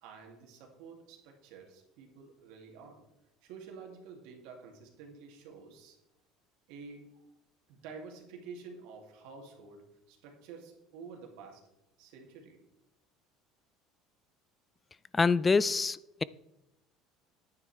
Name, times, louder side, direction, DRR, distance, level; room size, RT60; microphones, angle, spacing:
voice 1, 0.0-3.0 3.4-6.0 6.7-7.2 7.7-11.6 12.0-12.6, right 5 dB, 75° right, 2 dB, 2.4 m, -49 dB
voice 2, 15.1-16.2, left 4 dB, 25° left, 19 dB, 0.3 m, -26 dB
10.0 x 9.5 x 3.3 m, 0.90 s
supercardioid pair, 85°, 0 cm